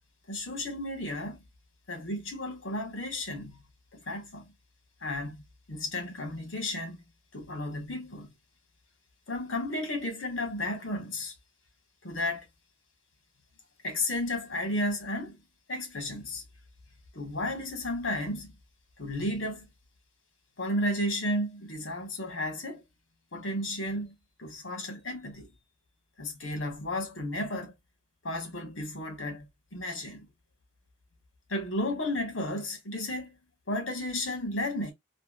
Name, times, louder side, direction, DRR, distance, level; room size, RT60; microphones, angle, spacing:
voice 1, 0.3-1.4 1.9-3.6 3.9-4.5 5.0-5.4 5.7-7.0 7.3-8.3 9.3-11.3 12.0-12.5 13.8-15.4 15.7-16.4 17.1-18.5 19.0-19.6 20.6-22.8 23.3-25.5 26.2-27.7 28.2-30.3 31.5-33.4 33.7-34.9, left 1 dB, 75° left, 1.5 m, -33 dB
3.4 x 2.6 x 2.4 m
head